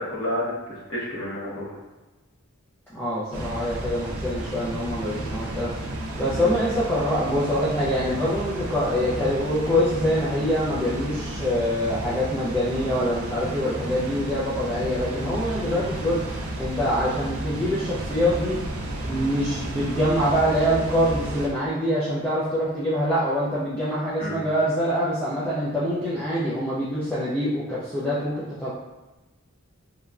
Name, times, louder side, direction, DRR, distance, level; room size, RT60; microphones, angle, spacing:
voice 1, 0.0-1.6 6.3-6.6 24.2-24.4, left 1 dB, 60° left, -8 dB, 1.0 m, -30 dB
voice 2, 2.9-5.7 6.2-16.2 16.6-18.6 19.0-28.3 28.6-28.7, equal, 10° left, -11 dB, 0.3 m, -25 dB
Water, 3.3-21.5, right 1 dB, 80° right, 0.4 m, -32 dB
3.0 x 2.2 x 2.4 m, 1.1 s
head